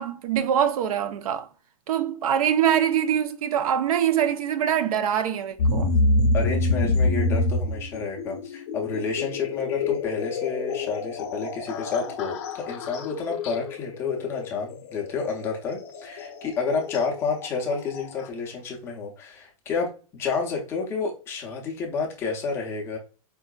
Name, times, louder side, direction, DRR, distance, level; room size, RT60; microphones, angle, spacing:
voice 1, 0.0-1.5 1.9-6.0, right 9 dB, 80° right, 0.5 m, -24 dB
sound 1, 5.6-18.3, left 2 dB, 55° left, 0.7 m, -27 dB
voice 2, 6.3-23.0, left 5 dB, 15° left, 0.5 m, -30 dB
4.6 x 2.5 x 2.3 m
supercardioid pair, 170°, 18 cm